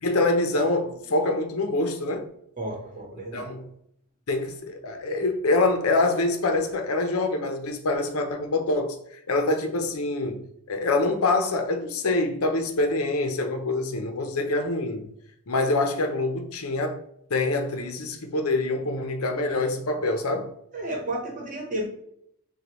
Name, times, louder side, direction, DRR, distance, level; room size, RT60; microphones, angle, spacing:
voice 1, 0.0-2.3 3.3-3.7 4.3-9.0 9.3-10.4 10.7-15.0 15.5-17.0 17.3-20.5, left 2 dB, 75° left, 0.7 m, -25 dB
voice 2, 2.6-3.5 20.7-21.8, right 1 dB, 35° right, 1.1 m, -32 dB
6.4 x 2.3 x 3.0 m
head